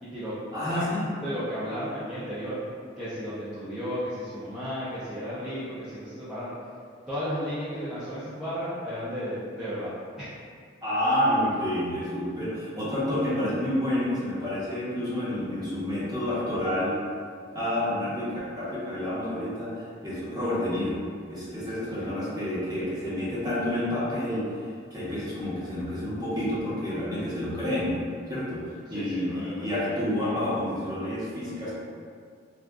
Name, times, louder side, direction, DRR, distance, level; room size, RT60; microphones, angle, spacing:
voice 1, 0.0-0.3 0.7-0.8 1.2-2.6 3.0-6.5 7.1-9.9 10.2-10.3 21.9-22.1 22.7-23.1 28.9-30.5, equal, 5° right, -14 dB, 0.5 m, -34 dB
voice 2, 0.5-1.1 10.8-17.0 17.5-20.9 21.3-24.4 24.9-28.0 28.3-28.6 28.9-31.7, left 1 dB, 20° right, -10 dB, 1.0 m, -29 dB
3.4 x 2.5 x 2.3 m, 2.1 s
head